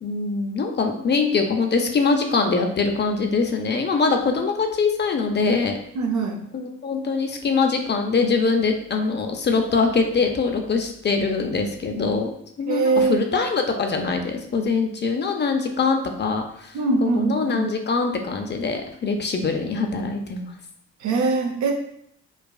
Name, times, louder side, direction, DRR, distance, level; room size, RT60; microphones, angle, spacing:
voice 1, 0.0-5.8 6.5-12.3 12.6-16.7 17.0-20.5, left 4 dB, 35° left, 4 dB, 0.5 m, -23 dB
voice 2, 5.9-6.4 12.6-13.3 16.7-17.7 21.0-21.7, right 4 dB, 70° right, 2 dB, 0.7 m, -22 dB
4.8 x 2.3 x 2.3 m, 0.71 s
cardioid pair, 90°, 30 cm